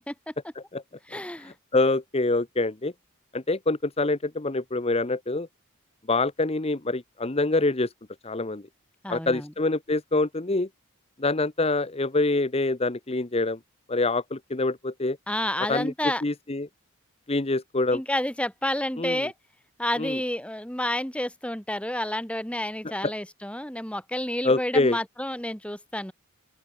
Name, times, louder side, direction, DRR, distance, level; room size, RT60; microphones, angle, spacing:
voice 1, 1.1-1.5 9.0-9.5 15.3-16.2 17.9-19.3 19.8-26.1, left 1 dB, 5° left, 3.5 m, -30 dB
voice 2, 1.7-2.9 3.3-5.5 6.1-7.9 8.2-8.6 9.1-10.7 11.2-13.6 13.9-15.2 15.7-15.9 16.2-16.7 17.3-18.0 19.0-19.2 20.0-20.2 24.4-25.0, left 2 dB, 30° left, 0.9 m, -25 dB
open air
head